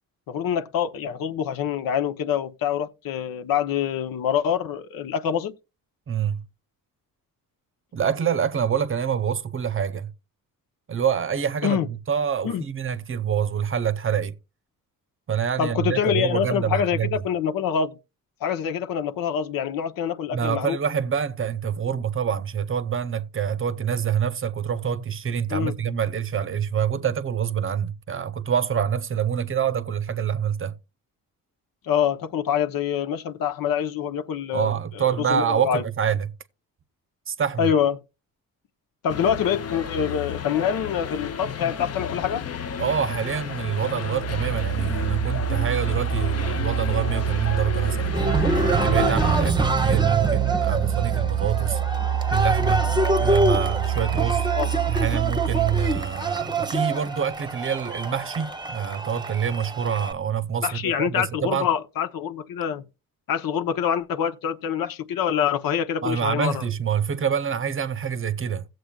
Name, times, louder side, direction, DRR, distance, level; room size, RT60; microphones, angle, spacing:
voice 1, 0.3-5.5 11.6-11.9 12.4-12.6 15.6-18.0 18.4-20.8 25.5-25.8 31.8-35.8 37.6-37.9 39.0-42.4 44.7-44.9 54.5-54.7 60.6-62.8 63.3-66.6, left 8 dB, 75° left, 1.0 m, -25 dB
voice 2, 6.1-6.4 7.9-10.1 10.9-14.4 15.3-17.2 20.3-30.8 34.5-36.3 37.3-37.7 42.8-51.8 52.3-52.9 53.2-54.5 54.9-61.7 66.0-68.7, right 8 dB, 35° right, 0.7 m, -26 dB
sound 1, 39.1-49.5, left 7 dB, 45° left, 0.8 m, -32 dB
Musical instrument, 44.2-56.2, right 10 dB, 90° right, 0.7 m, -26 dB
Cheering, 48.1-60.1, right 2 dB, 10° right, 0.9 m, -26 dB
16.5 x 7.8 x 2.4 m
cardioid pair, 105°, 34 cm